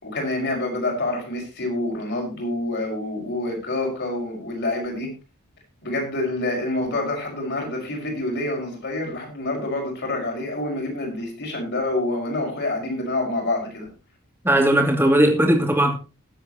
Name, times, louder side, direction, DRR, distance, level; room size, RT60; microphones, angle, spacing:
voice 1, 0.0-5.1 5.8-13.9, left 2 dB, 50° left, 5.7 m, -27 dB
voice 2, 14.4-16.0, right 1 dB, 10° right, 2.6 m, -18 dB
20.5 x 8.3 x 3.0 m
head